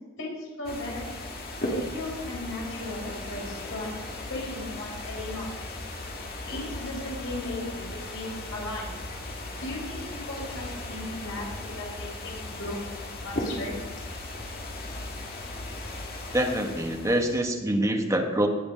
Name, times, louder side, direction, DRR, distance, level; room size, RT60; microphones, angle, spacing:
voice 1, 0.2-1.1 1.7-3.9 4.3-5.9 6.5-7.8 8.1-8.9 9.6-12.8 13.2-13.7, left 2 dB, 75° left, -3 dB, 5.2 m, -36 dB
sound 1, 0.6-17.4, left 1 dB, 50° left, 2.2 m, -37 dB
voice 2, 16.3-18.5, right 1 dB, 15° right, 3 dB, 1.3 m, -25 dB
18.5 x 7.1 x 5.1 m, 1.2 s
head